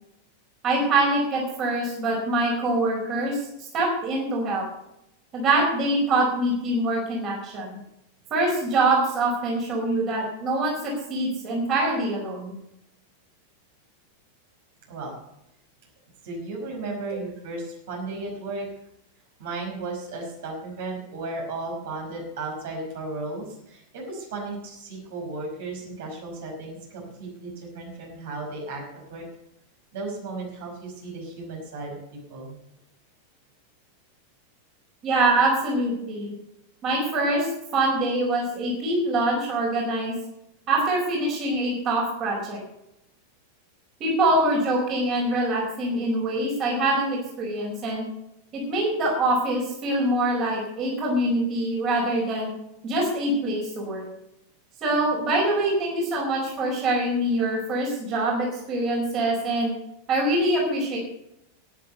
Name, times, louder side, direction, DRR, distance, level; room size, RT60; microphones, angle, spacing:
voice 1, 0.6-3.4 3.7-4.6 5.3-7.7 8.3-12.5 35.0-36.3 36.8-40.1 40.7-42.6 44.0-48.0 48.5-52.5 52.8-54.1 54.8-59.7 60.1-61.0, right 2 dB, 35° right, -2 dB, 4.8 m, -24 dB
voice 2, 16.2-18.7 19.4-28.8 29.1-29.3 29.9-32.6, right 2 dB, 55° right, -1 dB, 5.3 m, -35 dB
12.5 x 10.0 x 6.9 m, 0.82 s
figure-of-eight pair, 90°, 0 cm